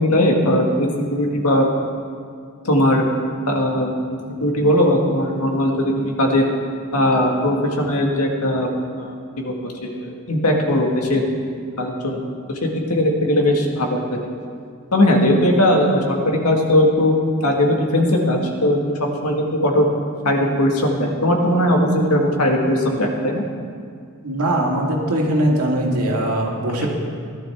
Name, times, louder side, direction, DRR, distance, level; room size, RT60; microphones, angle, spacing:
voice 1, 0.0-1.7 2.6-3.0 3.5-3.9 4.4-6.4 6.9-8.7 9.0-11.2 11.8-14.0 14.9-19.9 20.2-23.5, left 1 dB, 85° left, 1 dB, 1.8 m, -19 dB
voice 2, 24.2-26.9, right 1 dB, 85° right, -1 dB, 2.1 m, -21 dB
18.0 x 11.5 x 3.6 m, 2.1 s
head